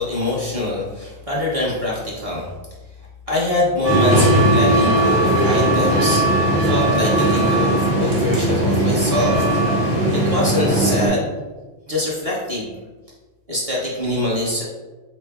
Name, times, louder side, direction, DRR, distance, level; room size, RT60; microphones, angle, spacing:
voice 1, 0.0-2.5 3.3-11.3 11.9-12.7 13.5-14.6, left 1 dB, 30° right, -6 dB, 1.0 m, -24 dB
sound 1, 3.8-11.1, right 1 dB, 60° right, 1.4 m, -18 dB
4.1 x 3.2 x 3.5 m, 1.2 s
omnidirectional pair, 1.5 m